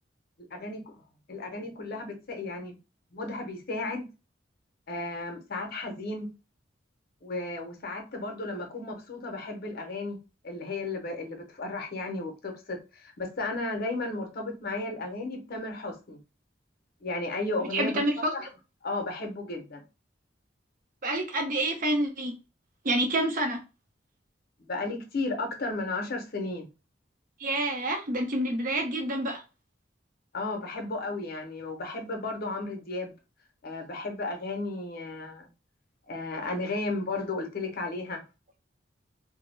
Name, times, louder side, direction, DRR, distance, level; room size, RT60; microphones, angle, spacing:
voice 1, 0.5-1.0 1.3-2.8 3.1-4.1 4.9-6.3 7.2-10.2 10.4-16.2 17.0-18.5 18.8-19.8 24.6-26.7 30.3-33.1 33.6-35.5 36.1-38.2, left 2 dB, 55° left, 0.6 m, -34 dB
voice 2, 17.7-18.3 21.0-22.3 22.8-23.6 27.4-29.4, right 1 dB, 50° right, 0.6 m, -28 dB
2.2 x 2.0 x 3.1 m
head